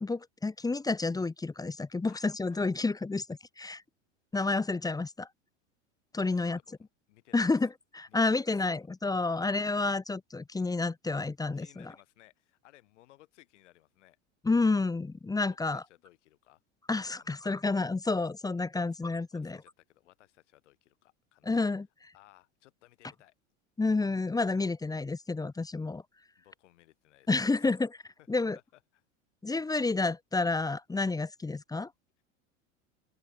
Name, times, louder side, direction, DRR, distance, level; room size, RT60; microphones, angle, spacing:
voice 1, 0.0-3.2 3.6-3.8 4.3-5.3 6.1-6.6 7.3-11.9 14.4-15.8 16.9-19.6 21.4-21.9 23.8-26.0 27.3-28.0 28.3-28.6 29.4-31.9, left 3 dB, 10° left, 0.9 m, -30 dB
voice 2, 2.1-2.7 6.2-7.7 8.1-8.9 9.3-9.5 11.5-14.2 15.7-16.6 17.0-17.4 18.8-19.0 19.3-21.5 22.1-23.3 26.4-27.8 28.2-29.0, left 16 dB, 75° left, 7.6 m, -61 dB
open air
hypercardioid pair, 85°, 36 cm